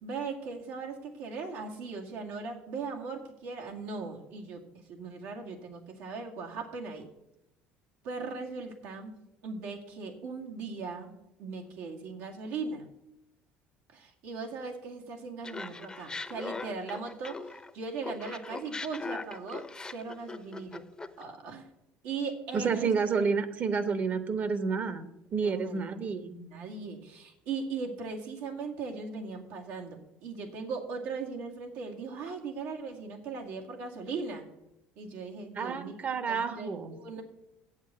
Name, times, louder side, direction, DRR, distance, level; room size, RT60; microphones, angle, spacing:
voice 1, 0.0-4.6 4.9-7.1 8.0-9.1 9.4-11.1 11.4-12.9 13.9-19.6 19.9-20.8 21.2-21.7 22.0-22.9 25.3-26.0 26.4-34.4 35.0-35.9 36.3-36.7 37.0-37.2, right 4 dB, 80° right, 0 dB, 2.2 m, -38 dB
Laughter, 15.4-17.7 18.0-21.2, left 3 dB, 15° left, 0.8 m, -40 dB
voice 2, 22.5-25.1 25.3-26.3 35.5-37.0, right 5 dB, 40° right, 10 dB, 1.2 m, -30 dB
8.0 x 7.4 x 7.4 m, 0.86 s
supercardioid pair, 95°, 4 cm